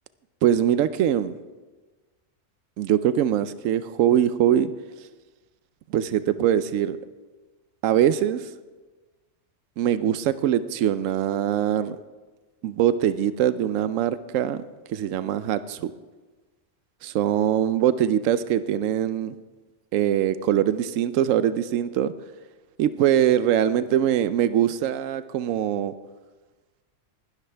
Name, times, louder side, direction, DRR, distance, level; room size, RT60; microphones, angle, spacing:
voice 1, 0.4-1.3 2.8-4.7 5.9-7.0 7.8-8.4 9.8-12.0 12.6-14.6 14.9-15.9 17.0-19.4 19.9-22.1 22.8-25.9, right 10 dB, 85° right, 13 dB, 1.0 m, -22 dB
20.0 x 12.0 x 3.4 m, 1.3 s
omnidirectional pair, 1.3 m